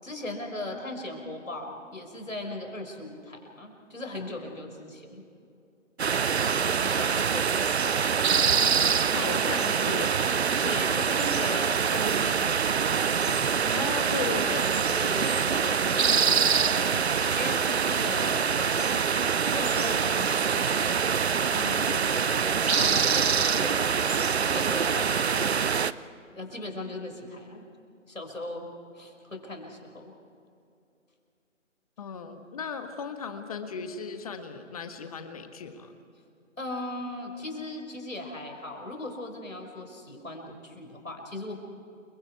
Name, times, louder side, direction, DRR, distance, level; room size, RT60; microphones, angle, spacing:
voice 1, 0.0-5.2 6.8-8.0 10.6-12.6 14.9-19.0 19.5-21.0 21.3-24.1 24.5-25.6 26.3-27.7 28.1-28.7 29.0-30.1 36.6-41.6, left 1 dB, 85° left, 3 dB, 5.5 m, -38 dB
sound 1, 6.0-25.9, right 6 dB, 55° right, 0.7 m, -25 dB
voice 2, 9.1-10.3 13.3-13.4 13.7-14.8 32.0-35.9, left 5 dB, 30° left, 7 dB, 1.6 m, -36 dB
29.5 x 24.0 x 4.7 m, 2.6 s
figure-of-eight pair, 150°, 39 cm